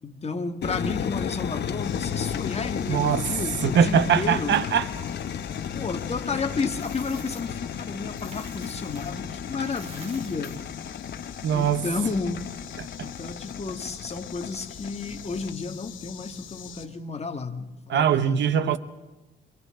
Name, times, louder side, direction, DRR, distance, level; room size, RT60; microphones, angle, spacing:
voice 1, 0.0-4.6 5.7-10.6 11.5-12.5 13.0-18.8, left 4 dB, 30° left, 2.1 m, -32 dB
sound 1, 0.6-15.5, left 8 dB, 55° left, 1.2 m, -34 dB
sound 2, 1.8-16.9, left 9 dB, 75° left, 2.4 m, -46 dB
voice 2, 2.9-3.3 3.6-4.9 11.4-11.9 13.0-13.1 17.9-18.8, right 8 dB, 65° right, 1.1 m, -22 dB
Coin (dropping), 6.4-9.2 9.5-11.8, right 3 dB, 30° right, 3.4 m, -50 dB
28.0 x 25.5 x 3.9 m
cardioid pair, 90°, 20 cm